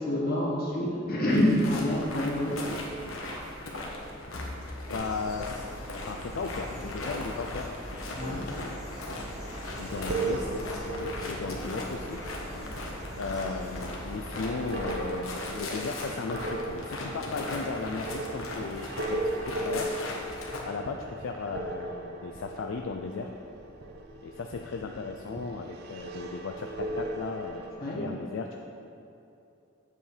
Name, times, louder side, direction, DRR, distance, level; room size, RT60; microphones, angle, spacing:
voice 1, 0.0-2.6 8.1-8.5 27.8-28.1, left 1 dB, 50° left, -4 dB, 1.6 m, -27 dB
sound 1, 1.3-20.6, left 2 dB, 85° left, 1.1 m, -38 dB
voice 2, 4.8-5.7 6.0-7.7 8.1-8.8 9.8-12.2 13.2-19.9 20.7-23.3 24.2-28.6, left 4 dB, 70° left, 3 dB, 0.4 m, -36 dB
sound 2, 4.9-15.1, equal, 5° right, 1.7 m, -43 dB
sound 3, 9.3-27.7, right 2 dB, 50° right, 0.6 m, -38 dB
7.9 x 7.3 x 3.3 m, 2.7 s
head